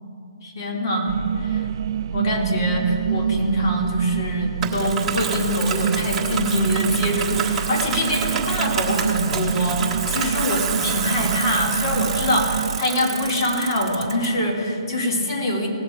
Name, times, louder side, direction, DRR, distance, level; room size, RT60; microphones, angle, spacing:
voice 1, 0.4-1.7 2.1-15.7, equal, 50° left, -1 dB, 3.1 m, -24 dB
sound 1, 1.1-12.8, right 8 dB, 50° right, 0.3 m, -28 dB
Bicycle, 4.6-14.3, right 7 dB, 15° right, 1.5 m, -28 dB
19.0 x 7.2 x 4.8 m, 2.7 s
figure-of-eight pair, 140°, 3 cm